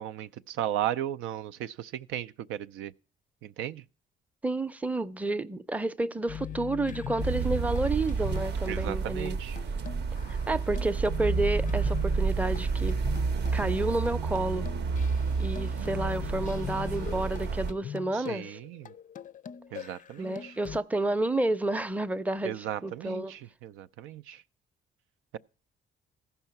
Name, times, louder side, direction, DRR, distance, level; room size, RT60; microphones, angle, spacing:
voice 1, 0.0-2.9 3.4-3.8 8.7-9.6 18.1-18.9 19.7-20.6 22.4-24.4, right 11 dB, 90° right, 0.4 m, -36 dB
voice 2, 4.4-9.4 10.5-13.0 13.5-14.7 15.4-18.6 20.2-23.3, right 2 dB, 5° right, 0.5 m, -30 dB
sound 1, 6.3-8.8 9.3-9.4 9.6-13.6 14.1-14.2 14.4-20.8, left 8 dB, 40° left, 0.4 m, -41 dB
sound 2, 7.2-17.7, right 5 dB, 60° right, 0.7 m, -30 dB
14.5 x 5.6 x 5.7 m
cardioid pair, 90°, 20 cm